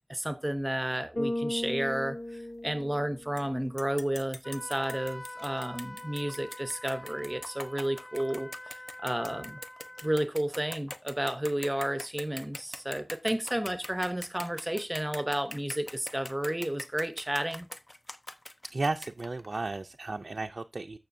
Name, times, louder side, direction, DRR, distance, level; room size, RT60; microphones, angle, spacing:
voice 1, 0.1-8.7 9.0-9.6 10.0-17.7, right 1 dB, 15° right, 0.8 m, -32 dB
Bass guitar, 1.2-3.5, left 1 dB, 85° left, 1.5 m, -35 dB
sound 1, 3.4-3.5 3.8-19.6, left 1 dB, 35° left, 0.7 m, -43 dB
Wind instrument woodwind instrument, 4.4-10.2, left 1 dB, 55° left, 2.6 m, -45 dB
voice 2, 18.7-21.0, right 3 dB, 70° right, 0.4 m, -34 dB
14.0 x 5.9 x 2.6 m
wide cardioid pair, 65°, 0 cm